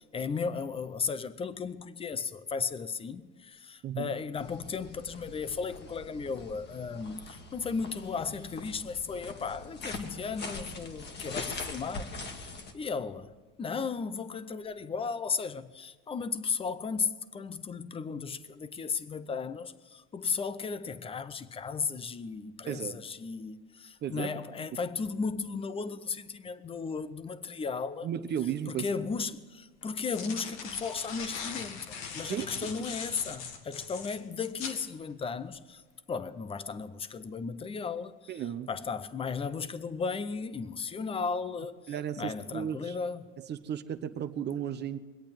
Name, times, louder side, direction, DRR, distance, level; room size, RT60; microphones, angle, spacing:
voice 1, 0.0-13.3 13.6-28.1 28.7-35.8 36.1-43.3, left 5 dB, 20° left, 0.6 m, -35 dB
sound 1, 4.4-12.7, left 3 dB, 35° left, 1.8 m, -43 dB
voice 2, 22.7-23.0 24.0-24.4 28.0-28.9 32.2-32.7 38.3-38.7 41.9-43.0 43.4-45.0, right 9 dB, 35° right, 0.8 m, -34 dB
sound 2, 28.7-28.8 29.8-34.8, left 6 dB, 80° left, 1.9 m, -40 dB
22.0 x 8.7 x 7.5 m
supercardioid pair, 115°, 30 cm